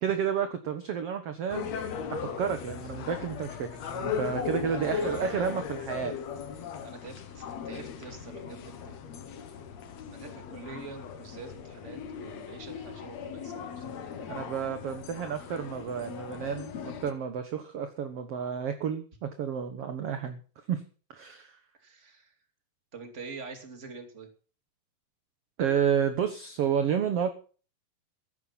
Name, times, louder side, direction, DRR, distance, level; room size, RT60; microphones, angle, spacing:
voice 1, 0.0-1.8 2.1-6.1 14.2-20.4 20.7-20.8 21.1-21.6 25.6-27.3, right 8 dB, 55° right, 8 dB, 1.9 m, -31 dB
sound 1, 1.5-17.1, left 7 dB, 55° left, 2.3 m, -38 dB
voice 2, 4.6-5.5 6.8-9.4 10.1-14.0 21.8-22.3 22.9-24.3, right 4 dB, 20° right, 6 dB, 2.5 m, -45 dB
14.5 x 11.5 x 5.9 m, 0.38 s
omnidirectional pair, 4.0 m